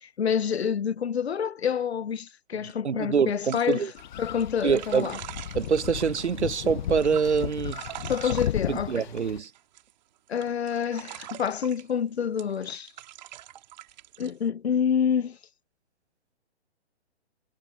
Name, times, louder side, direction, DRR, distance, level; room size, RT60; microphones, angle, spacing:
voice 1, 0.0-3.9 4.2-5.2 8.1-9.1 10.3-12.9 14.2-15.4, left 7 dB, 70° left, 0.9 m, -27 dB
voice 2, 2.8-3.9 4.6-5.1 5.5-7.8 8.7-9.5, right 6 dB, 80° right, 0.9 m, -25 dB
sound 1, 3.5-6.4 6.8-9.9 10.3-11.9 12.4-14.3, right 13 dB, 40° right, 2.6 m, -43 dB
sound 2, 4.0-9.4, left 11 dB, 45° left, 0.8 m, -35 dB
figure-of-eight pair, 130°, 34 cm